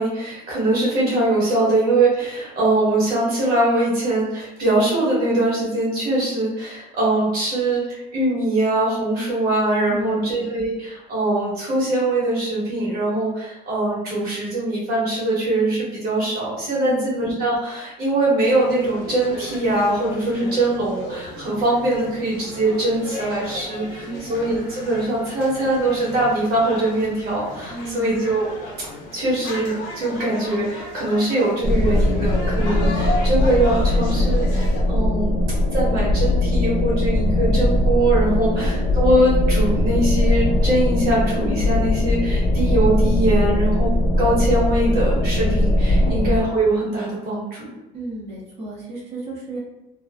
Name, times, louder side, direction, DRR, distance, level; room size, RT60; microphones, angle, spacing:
voice 1, 0.0-28.5 28.8-35.4 35.7-47.7, right 2 dB, 50° right, -6 dB, 1.5 m, -22 dB
voice 2, 9.9-10.3 16.8-17.1 24.1-24.3 27.7-28.2 38.5-38.8 46.0-46.3 47.9-49.6, right 2 dB, 35° right, -6 dB, 1.1 m, -33 dB
sound 1, 18.4-34.8, left 2 dB, 75° left, 0.7 m, -35 dB
sound 2, 31.6-46.4, left 1 dB, 30° left, 0.5 m, -20 dB
3.2 x 2.1 x 2.4 m, 1.0 s
cardioid pair, 170°, 20 cm